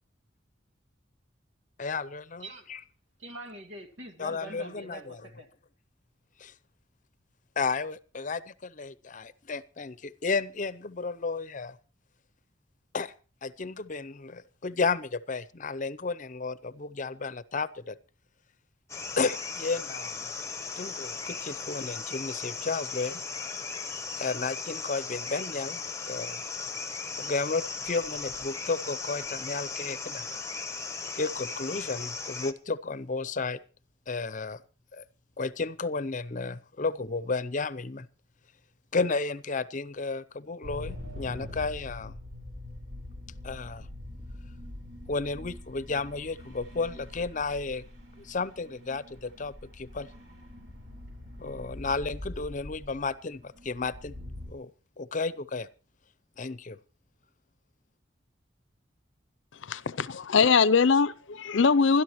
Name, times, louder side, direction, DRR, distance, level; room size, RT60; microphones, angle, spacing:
voice 1, 1.8-2.8 4.2-5.2 6.4-6.5 7.6-11.8 12.9-13.1 13.4-18.0 19.2-20.2 20.8-23.2 24.1-26.4 27.2-30.3 31.1-33.6 34.1-34.6 34.9-35.0 35.4-38.1 38.9-42.2 43.4-43.9 45.1-47.8 48.2-50.1 51.4-54.1 54.5-54.7 55.0-55.7 56.4-56.8, left 4 dB, 45° left, 0.7 m, -33 dB
voice 2, 3.2-5.5, right 1 dB, 80° right, 2.1 m, -44 dB
sound 1, 18.9-32.5, left 4 dB, 15° left, 0.9 m, -37 dB
sound 2, 40.6-54.5, left 1 dB, 65° right, 4.5 m, -44 dB
voice 3, 59.6-62.0, left 5 dB, 80° left, 0.6 m, -22 dB
27.5 x 13.0 x 3.1 m
head